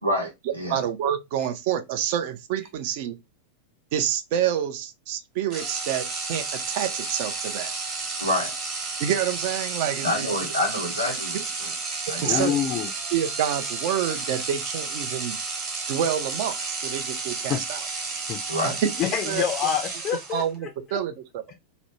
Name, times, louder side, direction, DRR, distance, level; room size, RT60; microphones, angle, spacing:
voice 1, 0.0-0.8 8.2-8.5 10.0-11.7 12.1-12.5 18.5-18.8, left 1 dB, 85° right, 0.9 m, -27 dB
voice 2, 0.7-3.2 3.9-7.7 9.0-10.3 11.3-11.4 12.2-12.6 13.1-15.4 15.9-17.9 18.6-18.9 19.2-19.4 20.3-21.4, right 10 dB, 50° right, 0.4 m, -28 dB
sound 1, 5.5-20.5, right 4 dB, 30° right, 1.0 m, -32 dB
voice 3, 12.2-12.9 17.5-17.6 18.3-18.4 19.0-20.4, left 9 dB, 35° left, 0.4 m, -26 dB
2.4 x 2.1 x 2.9 m
figure-of-eight pair, 90°, 0 cm